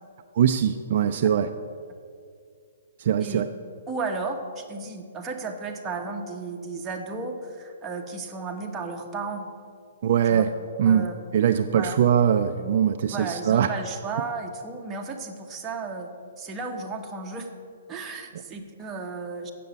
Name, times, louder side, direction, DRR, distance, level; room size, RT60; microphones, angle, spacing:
voice 1, 0.3-1.5 3.0-3.5 10.0-10.5 10.8-11.1 11.3-13.7, right 9 dB, 50° right, 8 dB, 0.4 m, -21 dB
voice 2, 3.9-9.5 10.2-10.4 10.8-11.1 11.7-12.0 13.1-16.1 16.4-17.5 17.9-19.5, right 4 dB, 15° right, 1 dB, 1.1 m, -34 dB
7.6 x 6.7 x 8.1 m, 2.2 s
hypercardioid pair, 145°, 0 cm